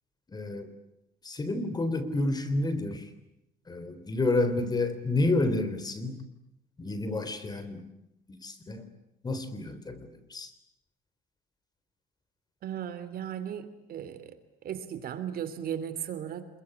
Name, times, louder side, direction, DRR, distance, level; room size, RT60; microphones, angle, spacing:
voice 1, 0.3-0.7 1.2-3.1 3.7-6.2 6.8-7.8 8.3-8.9 9.2-10.5, left 2 dB, 25° left, 12 dB, 3.6 m, -30 dB
voice 2, 12.6-14.4 14.6-16.5, right 9 dB, 60° right, 12 dB, 3.0 m, -36 dB
27.0 x 22.5 x 9.9 m, 0.84 s
cardioid pair, 110°, 17 cm